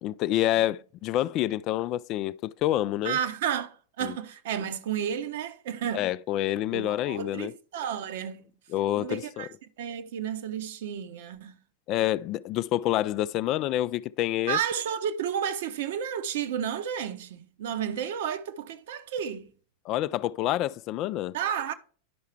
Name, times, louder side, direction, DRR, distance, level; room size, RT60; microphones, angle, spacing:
voice 1, 0.0-3.2 4.0-4.1 5.9-7.5 8.7-9.5 11.9-14.6 19.9-21.3, left 13 dB, 40° left, 0.3 m, -27 dB
voice 2, 3.0-6.1 6.7-8.5 9.0-9.5 9.8-11.6 14.5-19.5 21.3-21.7, right 8 dB, 55° right, 0.9 m, -32 dB
11.0 x 5.6 x 3.3 m
figure-of-eight pair, 90°, 0 cm